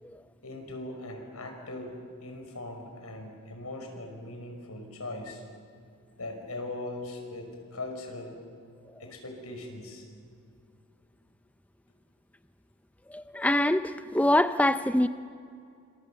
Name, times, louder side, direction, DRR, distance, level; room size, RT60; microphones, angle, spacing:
voice 1, 0.4-5.4 6.2-8.4 9.0-10.0, left 2 dB, 85° left, 4 dB, 5.5 m, -40 dB
voice 2, 13.1-15.1, left 1 dB, 5° left, 11 dB, 0.6 m, -25 dB
29.0 x 25.5 x 7.1 m, 2.4 s
head